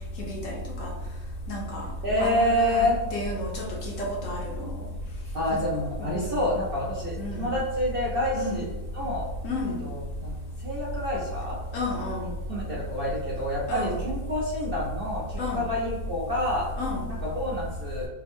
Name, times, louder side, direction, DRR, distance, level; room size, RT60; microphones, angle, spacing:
voice 1, 0.2-0.9 1.5-1.9 2.2-4.9 5.5-5.6 6.0-6.5 7.2-7.5 8.3-8.6 9.4-9.8 11.7-12.3 13.7-14.0 15.4-15.6 16.8-17.1, left 1 dB, 65° left, -1 dB, 0.9 m, -31 dB
voice 2, 2.0-3.0 5.3-9.3 9.8-11.6 12.2-16.7 17.1-18.1, left 1 dB, 60° right, -6 dB, 0.6 m, -28 dB
3.4 x 2.1 x 3.4 m, 1.2 s
omnidirectional pair, 1.7 m